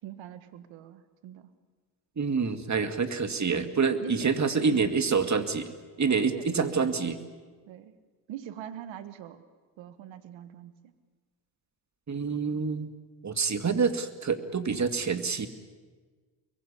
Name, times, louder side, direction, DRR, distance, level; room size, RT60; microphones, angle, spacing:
voice 1, 0.0-1.5 4.0-4.3 4.7-4.9 6.3-6.5 7.7-7.9 8.3-9.4 9.8-10.9, right 11 dB, 80° right, 11 dB, 1.7 m, -43 dB
voice 2, 2.2-5.7 6.0-7.2 12.1-12.9 13.2-15.5, right 5 dB, 40° right, 8 dB, 2.4 m, -27 dB
25.5 x 22.5 x 8.6 m, 1.4 s
supercardioid pair, 60°, 45 cm